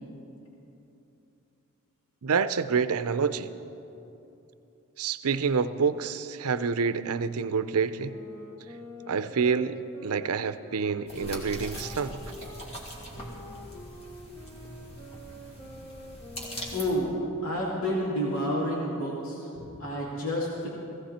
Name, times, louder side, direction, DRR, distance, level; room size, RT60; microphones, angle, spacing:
voice 1, 2.2-3.5 5.0-8.2 9.1-12.2, right 5 dB, 80° right, 13 dB, 0.6 m, -27 dB
sound 1, 8.0-12.7 13.1-18.1, left 1 dB, 10° left, 1.2 m, -47 dB
sound 2, 11.1-16.9, equal, 30° left, 2.4 m, -41 dB
voice 2, 16.7-17.1 17.4-20.7, equal, 70° left, -4 dB, 2.3 m, -30 dB
17.5 x 16.0 x 4.3 m, 2.9 s
head